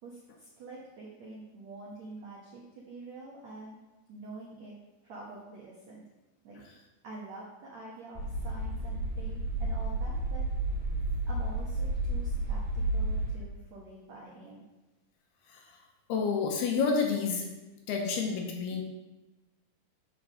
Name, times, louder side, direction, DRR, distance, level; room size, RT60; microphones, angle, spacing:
voice 1, 0.0-3.8 4.1-4.8 5.0-6.0 6.4-6.6 7.0-10.5 11.3-14.6, right 2 dB, 70° right, -5 dB, 1.7 m, -46 dB
sound 1, 8.1-13.3, right 2 dB, 5° left, 2.3 m, -31 dB
voice 2, 16.1-17.5 17.9-18.8, left 5 dB, 75° left, 2 dB, 2.7 m, -29 dB
9.6 x 4.7 x 6.4 m, 1.1 s
omnidirectional pair, 5.1 m